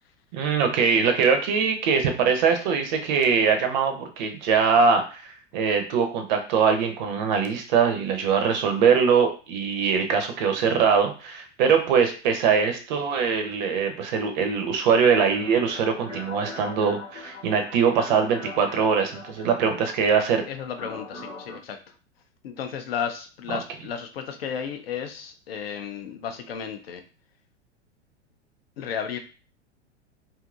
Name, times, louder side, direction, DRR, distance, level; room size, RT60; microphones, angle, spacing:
voice 1, 0.3-5.2 5.5-20.4, right 6 dB, 40° right, 5 dB, 0.6 m, -22 dB
sound 1, 15.0-21.6, left 3 dB, 85° left, 1.0 m, -41 dB
voice 2, 20.5-21.8 22.4-27.0 28.8-29.2, left 7 dB, 55° left, 6 dB, 0.5 m, -33 dB
2.7 x 2.5 x 2.4 m, 0.35 s
figure-of-eight pair, 95°, 36 cm